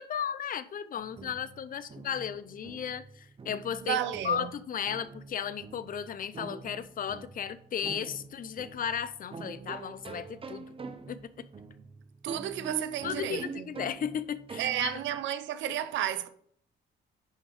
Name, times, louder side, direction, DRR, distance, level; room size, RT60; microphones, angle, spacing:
voice 1, 0.0-4.0 4.2-10.6 11.1-11.2 13.0-15.0, left 8 dB, 50° left, 0.6 m, -35 dB
sound 1, 1.0-15.2, right 4 dB, 30° right, 0.7 m, -44 dB
voice 2, 3.8-4.5 12.2-13.7 14.6-16.3, right 11 dB, 80° right, 0.7 m, -32 dB
5.8 x 5.4 x 4.9 m
cardioid pair, 80°, 19 cm